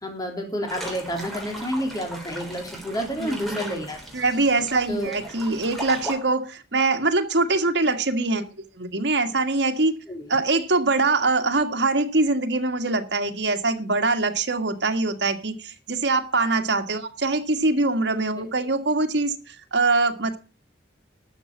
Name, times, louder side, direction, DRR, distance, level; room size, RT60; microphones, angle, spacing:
voice 1, 0.0-4.0 4.9-5.1 10.1-10.3 18.4-18.5, equal, 20° left, 2 dB, 3.3 m, -30 dB
sound 1, 0.7-6.2, right 1 dB, ahead, 3.8 m, -37 dB
voice 2, 3.2-3.8 4.1-9.9 10.3-20.4, right 3 dB, 75° right, 6 dB, 1.8 m, -23 dB
12.5 x 7.1 x 7.3 m, 0.34 s
head